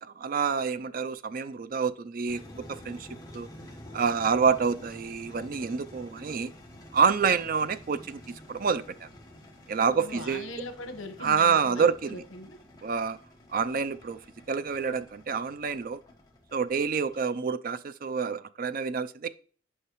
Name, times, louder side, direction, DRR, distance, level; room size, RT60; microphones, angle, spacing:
voice 1, 0.0-2.4 2.7-3.1 3.3-3.5 3.9-6.5 6.9-9.1 9.7-10.5 11.2-12.2 12.8-13.2 13.5-14.2 14.5-16.0 16.5-19.3, right 6 dB, 45° right, 0.4 m, -27 dB
sound 1, 2.3-17.2, left 1 dB, 20° left, 1.3 m, -49 dB
voice 2, 9.9-12.6, left 2 dB, 80° left, 1.1 m, -41 dB
9.8 x 5.6 x 3.0 m
head